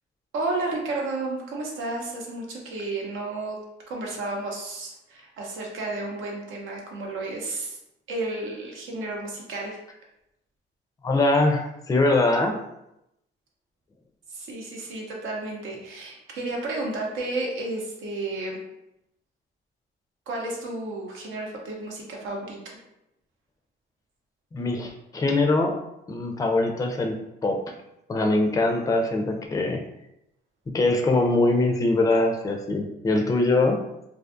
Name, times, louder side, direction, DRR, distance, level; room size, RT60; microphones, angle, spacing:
voice 1, 0.3-3.6 3.9-7.8 8.1-9.8 14.3-18.6 20.3-22.6, right 2 dB, 85° right, -1 dB, 0.7 m, -32 dB
voice 2, 11.0-12.6 24.5-25.8 26.1-27.2 27.4-27.6 28.1-29.8 30.7-33.8, left 2 dB, 15° left, 3 dB, 0.4 m, -22 dB
2.5 x 2.3 x 2.5 m, 0.84 s
cardioid pair, 90°, 20 cm